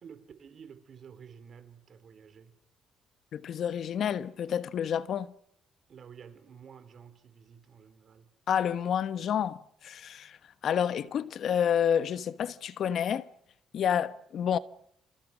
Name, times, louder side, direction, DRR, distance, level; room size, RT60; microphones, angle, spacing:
voice 1, 0.0-2.6 5.9-8.3, right 7 dB, 55° right, 4.3 m, -51 dB
voice 2, 3.3-5.3 8.5-13.3 13.7-14.6, left 8 dB, 65° left, 1.2 m, -29 dB
29.0 x 26.5 x 6.3 m
cardioid pair, 90°, 0 cm